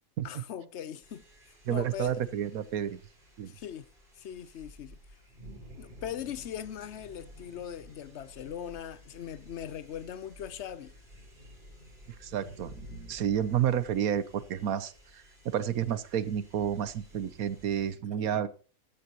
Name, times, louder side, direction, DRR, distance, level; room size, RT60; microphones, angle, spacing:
voice 1, 0.2-2.2 3.5-3.9 4.1-5.0 5.8-10.9 18.2-18.4, left 9 dB, 60° left, 0.9 m, -40 dB
sound 1, 1.0-17.9, equal, 35° right, 4.6 m, -53 dB
voice 2, 1.6-3.0 3.4-3.5 12.2-18.5, right 9 dB, 80° right, 1.3 m, -30 dB
14.0 x 13.5 x 3.0 m
omnidirectional pair, 1.5 m